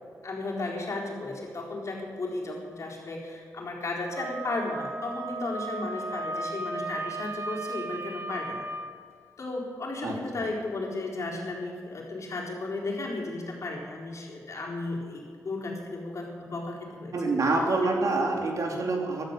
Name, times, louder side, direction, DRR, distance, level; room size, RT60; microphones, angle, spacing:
voice 1, 0.2-8.7 9.4-17.1 17.8-18.0 18.6-18.8, left 2 dB, 55° left, -2 dB, 4.2 m, -34 dB
Wind instrument woodwind instrument, 4.1-8.9, right 2 dB, 45° right, 2.2 m, -35 dB
voice 2, 17.1-19.2, right 3 dB, 60° right, 1 dB, 2.8 m, -26 dB
14.5 x 12.5 x 6.9 m, 2.1 s
cardioid pair, 60°, 6 cm